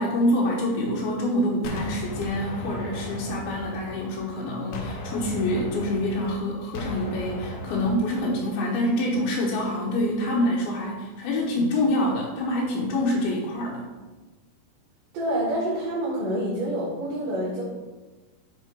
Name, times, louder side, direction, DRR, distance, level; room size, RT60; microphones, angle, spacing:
voice 1, 0.0-13.9, left 1 dB, 85° left, -4 dB, 3.0 m, -26 dB
Gunshot gunfire, 1.6-4.4 4.7-8.3, left 2 dB, 70° left, 1.8 m, -36 dB
voice 2, 15.1-17.6, right 1 dB, 65° right, -9 dB, 3.6 m, -27 dB
10.0 x 4.2 x 4.6 m, 1.2 s
omnidirectional pair, 4.3 m